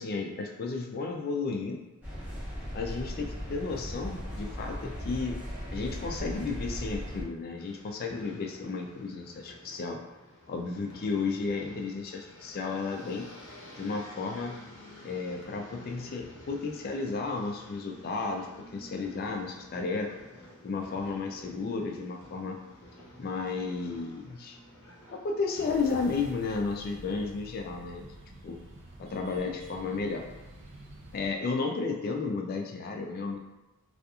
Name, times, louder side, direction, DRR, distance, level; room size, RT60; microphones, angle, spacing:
voice 1, 0.0-1.8 2.7-5.4 5.7-10.0 10.5-13.3 13.8-14.6 15.0-18.5 18.7-20.1 20.6-22.6 23.2-24.6 25.1-28.1 28.4-28.6 29.0-30.2 31.1-33.4, left 4 dB, 45° left, 2 dB, 0.3 m, -33 dB
sound 1, 2.0-7.2, equal, 10° right, 0.7 m, -38 dB
sound 2, 7.6-26.1, left 1 dB, 85° left, 0.8 m, -51 dB
sound 3, 25.5-31.3, right 1 dB, 60° right, 0.4 m, -48 dB
2.8 x 2.4 x 2.3 m, 1.0 s
head